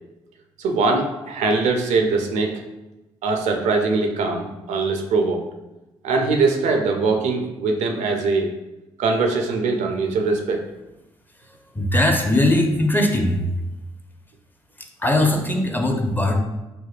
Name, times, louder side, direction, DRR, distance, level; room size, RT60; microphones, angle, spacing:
voice 1, 0.6-2.5 3.2-5.4 6.0-8.5 9.0-10.6, right 3 dB, 70° right, 3 dB, 0.4 m, -21 dB
voice 2, 11.7-13.5 14.8-16.4, left 1 dB, 15° left, 3 dB, 0.5 m, -20 dB
3.4 x 2.1 x 2.4 m, 1.0 s
hypercardioid pair, 40°, 13 cm